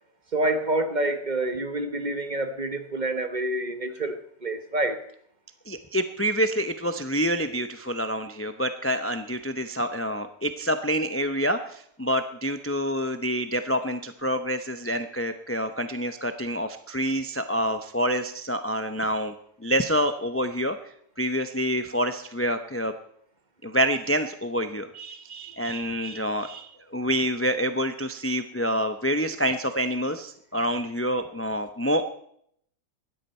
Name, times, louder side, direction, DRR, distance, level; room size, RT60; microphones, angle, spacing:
voice 1, 0.3-5.0, right 1 dB, 35° right, 1.2 m, -27 dB
voice 2, 5.7-19.3 19.6-20.8 21.2-22.9 23.6-32.0, equal, 15° left, 0.5 m, -27 dB
19.0 x 13.5 x 4.4 m
omnidirectional pair, 1.5 m